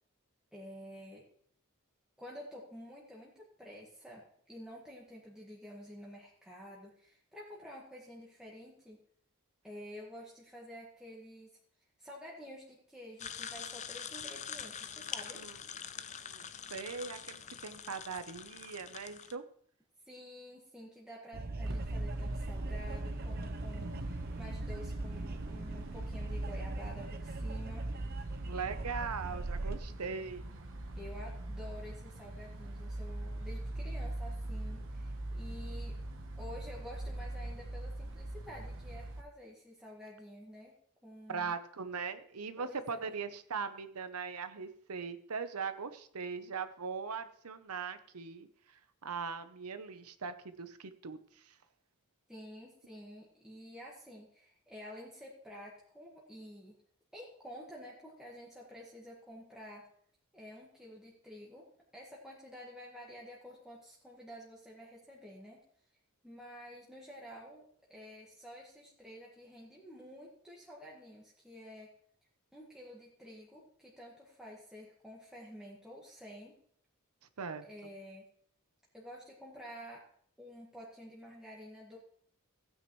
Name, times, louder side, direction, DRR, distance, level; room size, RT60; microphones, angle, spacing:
voice 1, 0.5-1.3 2.2-9.0 9.6-11.6 12.0-15.4 20.1-27.9 31.0-36.0 36.4-40.7 41.0-41.5 42.6-43.1 52.3-56.7 57.1-59.9 60.3-61.7 61.9-65.6 66.2-67.6 67.9-71.9 72.5-76.5 77.6-78.2 78.9-80.1 80.4-82.0, equal, 5° right, -5 dB, 1.7 m, -50 dB
sound 1, 13.2-19.3, left 8 dB, 30° left, 0.5 m, -44 dB
voice 2, 15.9-17.4 17.6-19.4 28.5-30.5 41.3-48.5 49.0-51.2 77.4-77.6, right 5 dB, 80° right, 11 dB, 0.8 m, -40 dB
sound 2, 21.3-29.8, right 2 dB, 45° right, 0.7 m, -41 dB
sound 3, 21.6-39.2, right 1 dB, 60° right, 1.1 m, -41 dB
16.0 x 9.0 x 3.1 m, 0.63 s
head